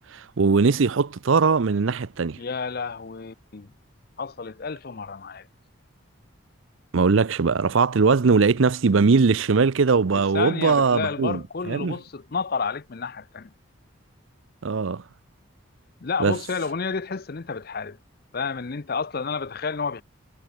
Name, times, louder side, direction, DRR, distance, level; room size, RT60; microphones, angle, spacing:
voice 1, 0.1-2.4 6.9-12.0 14.6-15.0 16.2-16.3, right 4 dB, 70° right, 0.6 m, -20 dB
voice 2, 2.4-3.7 4.2-5.5 10.1-13.5 16.0-18.0 18.3-20.0, left 5 dB, 45° left, 0.6 m, -30 dB
head